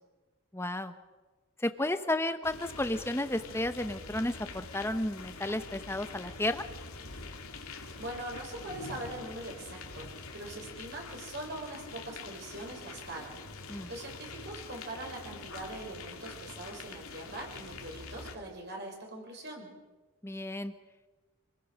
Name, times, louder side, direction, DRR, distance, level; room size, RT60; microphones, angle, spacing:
voice 1, 0.5-0.9 1.6-6.6 13.7-13.9 20.2-20.7, left 1 dB, 10° left, 9 dB, 1.0 m, -32 dB
sound 1, 2.4-18.3, left 4 dB, 75° left, 2.6 m, -45 dB
voice 2, 8.0-19.7, right 1 dB, 50° right, 1 dB, 5.7 m, -42 dB
27.0 x 20.0 x 6.5 m, 1.2 s
head